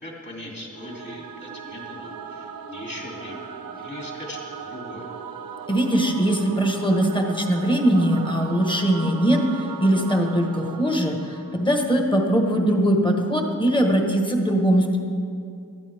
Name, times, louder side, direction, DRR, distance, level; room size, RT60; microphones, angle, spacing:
voice 1, 0.0-5.1, left 1 dB, 35° left, -3 dB, 3.1 m, -39 dB
Singing / Musical instrument, 0.7-12.0, right 6 dB, 85° right, 0.9 m, -38 dB
voice 2, 5.7-15.0, right 1 dB, 15° left, 2 dB, 1.4 m, -21 dB
19.0 x 13.5 x 3.6 m, 2.5 s
wide cardioid pair, 160°, 34 cm